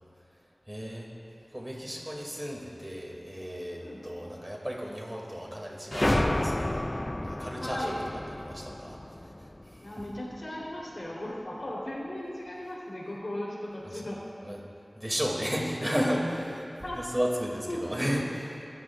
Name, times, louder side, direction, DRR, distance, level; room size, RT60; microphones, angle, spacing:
voice 1, 0.7-1.1 1.5-6.8 7.2-7.9 8.4-9.0 14.4-14.6 15.0-16.6 16.9-18.4, equal, 20° right, -2 dB, 2.6 m, -33 dB
sound 1, 5.9-10.4, left 1 dB, 30° left, 0.3 m, -31 dB
voice 2, 7.6-8.0 9.8-14.2 16.8-17.0 17.7-18.2, left 1 dB, 60° left, -5 dB, 3.7 m, -37 dB
22.5 x 13.5 x 2.5 m, 2.6 s
wide cardioid pair, 50°, 0 cm